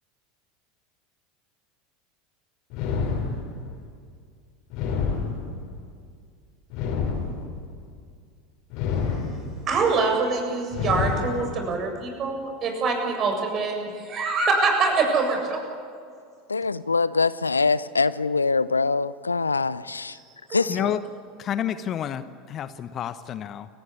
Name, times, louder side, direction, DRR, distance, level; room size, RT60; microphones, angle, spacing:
sound 1, 2.7-3.8 4.7-5.8 6.7-7.8 8.7-9.7 10.7-11.7, left 5 dB, 50° left, 5.8 m, -28 dB
voice 1, 9.7-15.6 20.5-20.6, right 4 dB, 35° right, 7.4 m, -24 dB
voice 2, 16.5-20.2 20.5-21.0, left 4 dB, 85° left, 0.6 m, -24 dB
voice 3, 20.7-21.0 21.4-23.7, left 9 dB, 35° left, 1.1 m, -29 dB
29.0 x 17.5 x 10.0 m
figure-of-eight pair, 80°, 0 cm